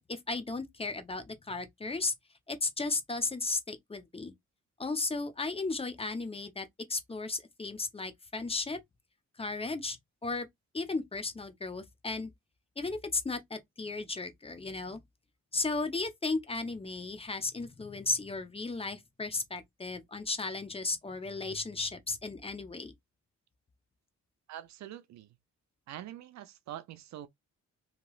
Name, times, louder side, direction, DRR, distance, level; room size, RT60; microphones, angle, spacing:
voice 1, 0.0-2.1 2.5-4.3 4.8-8.8 9.4-10.0 10.2-10.5 10.7-12.3 12.8-15.0 15.5-22.9, left 3 dB, 20° left, 0.6 m, -35 dB
voice 2, 24.5-25.3 25.9-27.3, right 12 dB, 65° right, 0.5 m, -44 dB
2.9 x 2.9 x 2.3 m
cardioid pair, 90°, 30 cm